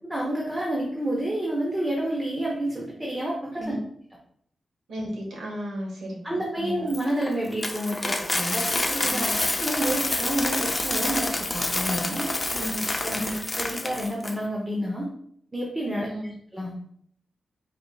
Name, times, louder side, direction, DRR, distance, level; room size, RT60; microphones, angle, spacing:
voice 1, 0.0-3.7 6.2-12.4 13.0-13.2 13.6-15.1 15.5-16.1 16.5-16.7, right 1 dB, 15° right, -2 dB, 0.8 m, -29 dB
voice 2, 4.9-6.8 9.0-9.4 12.6-12.8 13.1-13.4 16.0-16.3, equal, 80° right, -2 dB, 1.6 m, -34 dB
Coin (dropping), 6.9-14.3, left 2 dB, 20° left, 0.6 m, -28 dB
5.0 x 3.9 x 2.4 m, 0.66 s
wide cardioid pair, 115°, 0 cm